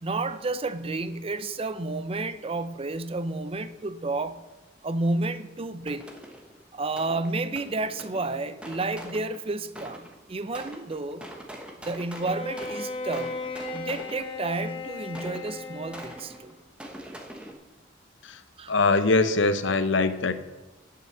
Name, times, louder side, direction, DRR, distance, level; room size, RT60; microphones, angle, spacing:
voice 1, 0.0-4.4 4.8-6.1 6.7-11.3 11.8-13.4 13.7-16.6 18.6-18.7, right 2 dB, 30° right, 0.5 m, -31 dB
sound 1, 5.9-6.6 7.0-10.2 10.5-14.5 15.1-17.5, right 1 dB, 5° right, 1.1 m, -43 dB
Bowed string instrument, 12.1-16.5, left 3 dB, 25° left, 1.3 m, -36 dB
voice 2, 18.7-20.3, left 3 dB, 65° left, 0.8 m, -22 dB
10.5 x 5.8 x 7.5 m
head